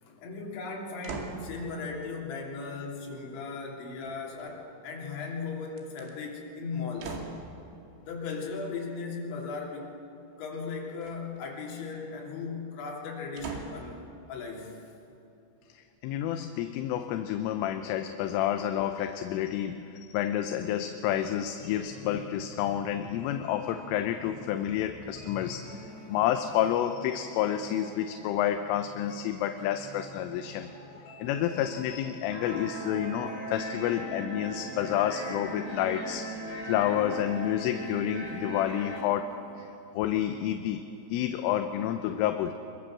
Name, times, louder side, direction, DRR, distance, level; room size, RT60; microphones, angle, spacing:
voice 1, 0.0-7.2 8.0-9.9 10.4-14.8 25.1-25.2 26.1-26.2, left 4 dB, 65° left, -2 dB, 5.4 m, -37 dB
sound 1, 1.0-1.5 4.0-4.7 5.7-6.1 7.0-7.5 11.0-11.5 13.4-13.9 14.6-14.7, right 5 dB, 80° right, 4.9 m, -40 dB
voice 2, 15.8-30.7 31.2-36.2 36.7-40.8 41.1-42.5, left 11 dB, 80° left, 7 dB, 3.3 m, -29 dB
sound 2, 21.7-37.4, equal, 35° left, 6.9 m, -48 dB
sound 3, 32.3-39.0, equal, 20° left, 7.4 m, -38 dB
24.0 x 23.0 x 7.4 m, 2.8 s
omnidirectional pair, 5.9 m